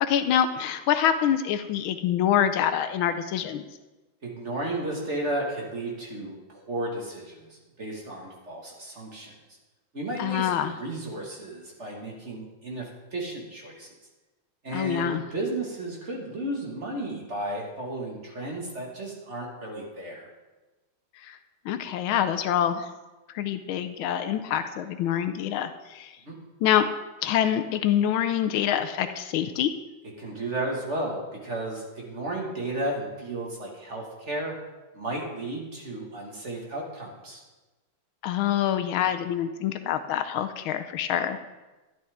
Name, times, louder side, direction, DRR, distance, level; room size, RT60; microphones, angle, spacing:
voice 1, 0.0-3.6 10.2-10.8 14.7-15.2 21.2-21.4 21.6-22.9 23.3-26.1 26.6-26.9 27.2-29.7 38.2-41.4, left 10 dB, 80° left, 9 dB, 1.4 m, -25 dB
voice 2, 4.2-9.3 9.9-13.9 14.6-20.3 26.3-26.4 30.2-34.5 34.9-37.4, right 1 dB, 35° right, -2 dB, 2.0 m, -33 dB
12.0 x 11.5 x 3.5 m, 1.1 s
omnidirectional pair, 2.3 m